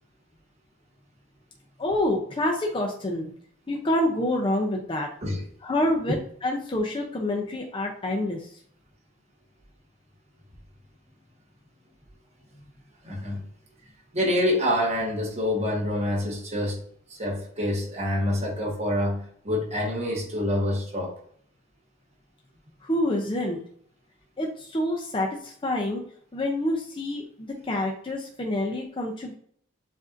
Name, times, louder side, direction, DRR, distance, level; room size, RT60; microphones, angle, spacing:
voice 1, 1.8-3.3 3.7-5.1 5.6-8.6 22.8-23.6 24.4-26.0 26.3-29.3, left 1 dB, 25° left, 1 dB, 0.5 m, -27 dB
voice 2, 13.0-13.4 14.1-16.8 17.1-21.2, left 1 dB, 35° right, -1 dB, 1.1 m, -26 dB
7.3 x 2.6 x 2.5 m, 0.62 s
head